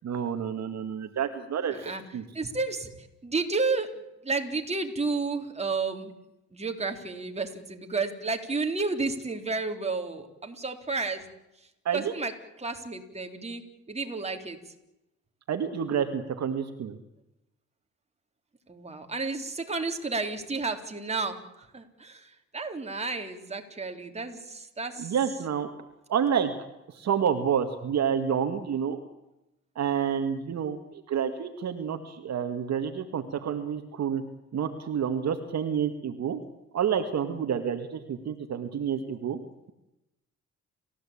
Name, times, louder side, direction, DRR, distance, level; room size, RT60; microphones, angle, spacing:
voice 1, 0.0-2.2 11.9-12.1 15.5-17.0 25.0-25.7 26.1-26.5 26.9-29.0 29.8-34.2 34.5-36.4 36.7-39.4, right 8 dB, 60° right, 7 dB, 2.0 m, -29 dB
voice 2, 1.7-2.0 2.3-2.9 3.2-3.9 4.2-6.1 6.5-11.3 11.9-12.3 12.6-13.6 13.9-14.6 18.7-25.1, right 3 dB, 20° right, 4 dB, 3.5 m, -31 dB
29.5 x 15.0 x 8.7 m, 0.91 s
cardioid pair, 90°, 30 cm